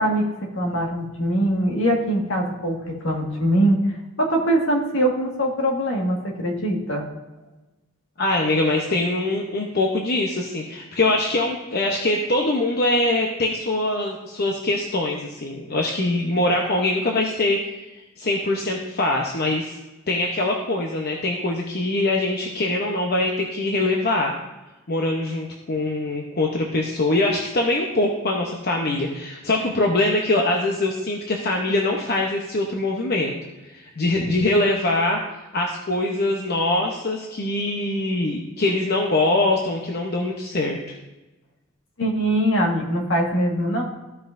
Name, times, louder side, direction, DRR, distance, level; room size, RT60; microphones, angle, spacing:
voice 1, 0.0-3.8 4.2-7.1 34.2-34.3 42.0-43.8, right 1 dB, 70° left, 0 dB, 1.7 m, -22 dB
voice 2, 8.2-17.8 18.2-19.8 20.1-24.3 24.9-33.3 33.6-35.2 35.5-40.8, left 2 dB, 50° left, 0 dB, 0.8 m, -23 dB
14.5 x 5.6 x 2.6 m, 1.1 s
head